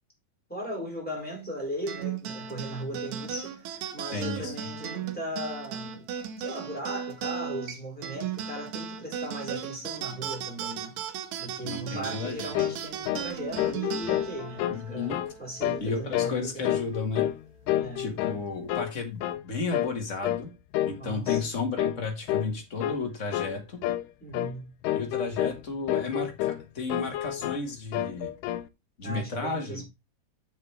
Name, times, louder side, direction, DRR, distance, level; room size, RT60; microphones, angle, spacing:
voice 1, 0.5-6.1 6.4-11.0 11.4-15.1 15.4-16.7 17.8-18.1 21.0-21.4 24.2-24.7 29.0-29.8, right 1 dB, 5° left, 4.0 m, -37 dB
sound 1, 1.9-16.6, right 8 dB, 70° right, 1.9 m, -37 dB
voice 2, 4.1-4.5 11.6-12.6 14.7-15.2 15.8-17.3 18.0-20.5 20.8-23.8 24.9-28.3 29.0-29.8, left 3 dB, 35° left, 1.2 m, -33 dB
sound 2, 12.5-12.8 13.1-13.3 13.6-14.8 15.1-15.3 15.6-15.9 16.1-16.4 16.6-17.4 17.7-18.4 18.7-18.9 19.2-19.4 19.7-19.9 20.2-20.5 20.7-21.0 21.3-21.5 21.8-22.0 22.3-22.5 22.8-23.0 23.3-23.6 23.8-24.1 24.3-24.5 24.8-25.6 25.9-26.6 26.9-27.6 27.9-28.7, left 13 dB, 80° left, 2.1 m, -29 dB
8.0 x 7.2 x 3.3 m
omnidirectional pair, 4.0 m